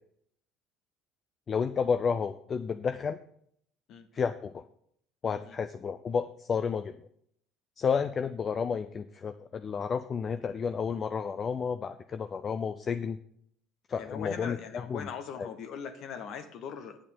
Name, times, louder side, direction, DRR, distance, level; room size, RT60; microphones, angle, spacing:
voice 1, 1.5-3.2 4.1-4.6 5.2-6.9 7.8-13.2 13.9-14.6 14.9-15.1 15.4-15.5, left 6 dB, 35° left, 10 dB, 0.5 m, -31 dB
voice 2, 5.2-5.6 13.9-17.0, left 7 dB, 50° left, 9 dB, 1.0 m, -40 dB
8.8 x 8.5 x 5.5 m, 0.69 s
figure-of-eight pair, 60°, 0 cm